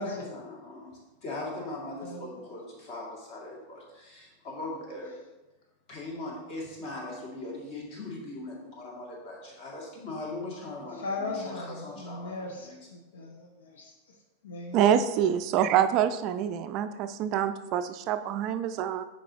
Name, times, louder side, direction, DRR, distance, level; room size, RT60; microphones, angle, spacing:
voice 1, 0.0-5.2 5.9-12.9, left 2 dB, 45° left, 2.2 m, -40 dB
voice 2, 10.9-14.1 14.4-14.8, left 2 dB, 65° left, 0.8 m, -38 dB
voice 3, 14.7-19.0, right 9 dB, 40° right, 0.3 m, -26 dB
9.8 x 4.4 x 2.8 m
figure-of-eight pair, 90°, 0 cm